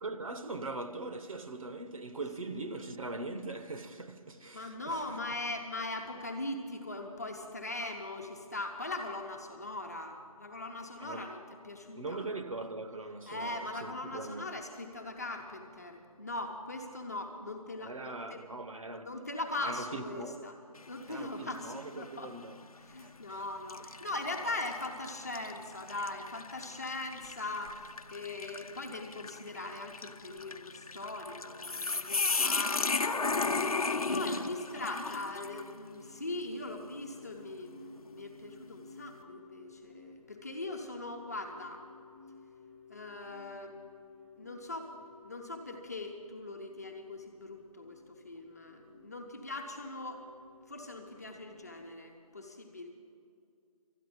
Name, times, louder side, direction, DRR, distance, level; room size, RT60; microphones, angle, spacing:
voice 1, 0.0-5.0 11.0-11.3 11.9-14.5 17.8-19.1 19.6-20.5 21.1-22.6 23.0-23.4, right 2 dB, 60° right, 1.0 m, -41 dB
voice 2, 4.5-12.3 13.3-18.5 19.0-20.6 20.9-22.3 22.8-33.4 34.1-41.8 42.9-43.8 44.3-50.2 50.7-52.9, left 2 dB, 25° left, 1.1 m, -40 dB
sound 1, 20.8-21.2 21.8-21.9 22.8-23.1 23.7-35.7, left 4 dB, 70° left, 0.8 m, -35 dB
sound 2, 33.5-51.9, left 4 dB, 20° right, 0.6 m, -55 dB
13.0 x 9.8 x 9.5 m
figure-of-eight pair, 180°, 19 cm